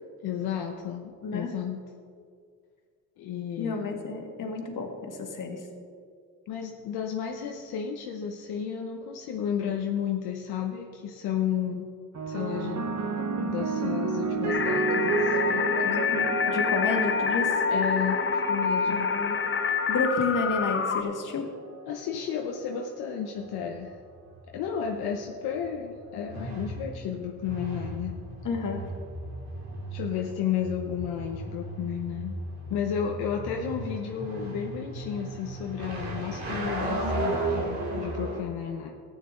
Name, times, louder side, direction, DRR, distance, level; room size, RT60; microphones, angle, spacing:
voice 1, 0.2-1.8 3.2-4.0 6.5-11.9 12.3-12.9 13.4-16.1 17.7-19.1 21.9-24.0 24.5-28.2 29.9-32.3 32.7-38.9, left 8 dB, 85° left, 1 dB, 0.9 m, -32 dB
voice 2, 3.6-5.6 16.1-17.6 18.9-19.4 19.6-21.5 28.4-28.8, left 3 dB, 55° left, 2 dB, 1.9 m, -30 dB
sound 1, 12.1-20.7 21.6-22.0, right 4 dB, 45° right, 1.0 m, -32 dB
sound 2, 14.5-21.0, left 5 dB, 35° left, 0.8 m, -26 dB
sound 3, 23.4-38.4, right 2 dB, 70° right, 3.0 m, -35 dB
13.5 x 9.3 x 3.7 m, 2.1 s
supercardioid pair, 65°, 37 cm